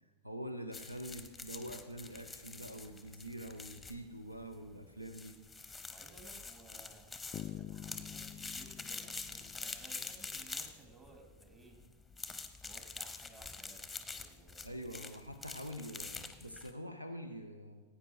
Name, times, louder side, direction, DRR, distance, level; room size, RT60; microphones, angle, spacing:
voice 1, 0.2-5.4 14.6-17.8, equal, 85° right, 8 dB, 0.7 m, -45 dB
sound 1, 0.7-16.7, left 4 dB, 5° left, 0.9 m, -46 dB
voice 2, 5.9-11.8 12.6-14.8, right 3 dB, 25° right, 3 dB, 2.7 m, -59 dB
sound 2, 7.3-10.4, left 12 dB, 35° left, 0.4 m, -47 dB
16.5 x 9.1 x 4.6 m, 1.3 s
figure-of-eight pair, 90°, 0 cm